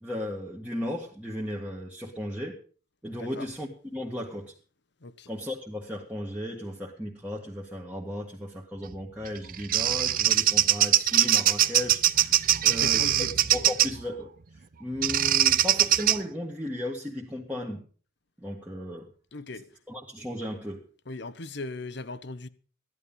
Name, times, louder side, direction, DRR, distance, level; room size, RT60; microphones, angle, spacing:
voice 1, 0.0-2.6 3.0-4.5 5.3-13.1 13.5-17.8 18.4-19.1 19.9-20.8, left 1 dB, 10° right, 1.7 m, -35 dB
Bird vocalization bird call bird song, 9.3-14.0 15.0-16.2, right 12 dB, 45° right, 0.6 m, -22 dB
voice 2, 12.7-13.3 19.3-19.7 21.1-22.5, left 2 dB, 60° left, 1.0 m, -38 dB
15.0 x 11.0 x 5.5 m
head